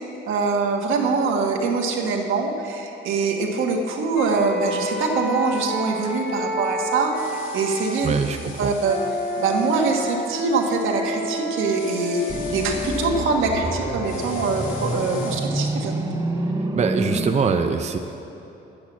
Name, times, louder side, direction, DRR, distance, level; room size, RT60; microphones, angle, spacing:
voice 1, 0.3-8.1 8.6-9.0 9.4-15.9, right 4 dB, 85° right, 1 dB, 1.4 m, -23 dB
sound 1, 4.2-8.0 8.8-15.3, left 1 dB, 55° left, 1.6 m, -30 dB
sound 2, 7.1-10.2 11.7-13.1 14.0-15.4, left 4 dB, 85° left, 1.7 m, -42 dB
voice 2, 8.0-8.7 16.7-18.0, right 5 dB, 35° right, 5 dB, 0.6 m, -23 dB
sound 3, 12.3-17.3, right 2 dB, 15° right, 0.9 m, -27 dB
9.9 x 8.6 x 7.2 m, 3.0 s
cardioid pair, 90°, 20 cm